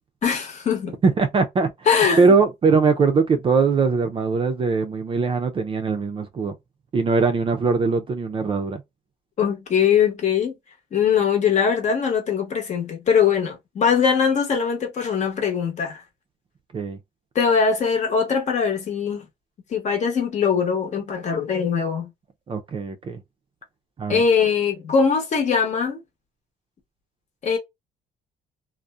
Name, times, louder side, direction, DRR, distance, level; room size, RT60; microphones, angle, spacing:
voice 1, 0.2-1.0 1.9-2.3 9.4-10.5 10.9-16.0 17.3-19.3 19.7-22.1 24.1-26.0 27.4-27.6, left 6 dB, 45° left, 0.9 m, -21 dB
voice 2, 1.0-1.7 2.2-6.5 6.9-8.8 16.7-17.0 22.5-23.2 24.0-24.2, right 4 dB, 30° right, 0.4 m, -21 dB
2.6 x 2.1 x 2.2 m
cardioid pair, 110°, 17 cm